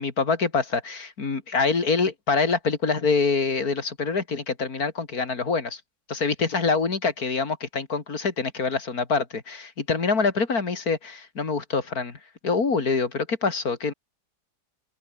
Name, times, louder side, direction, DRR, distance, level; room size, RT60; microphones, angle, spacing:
voice 1, 0.0-5.8 6.1-13.9, left 4 dB, 60° left, 3.1 m, -25 dB
omnidirectional pair, 1.8 m